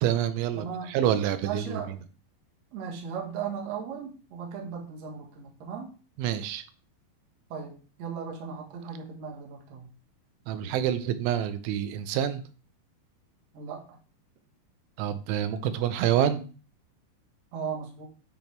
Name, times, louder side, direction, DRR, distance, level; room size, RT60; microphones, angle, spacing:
voice 1, 0.0-1.8 6.2-6.6 10.5-12.4 15.0-16.5, right 10 dB, 85° right, 11 dB, 3.1 m, -27 dB
voice 2, 0.5-1.0 1.4-1.9 2.7-5.9 7.5-9.9 13.5-13.8 17.5-18.0, right 6 dB, 65° right, 0 dB, 1.7 m, -37 dB
9.4 x 3.4 x 4.4 m, 0.37 s
omnidirectional pair, 5.3 m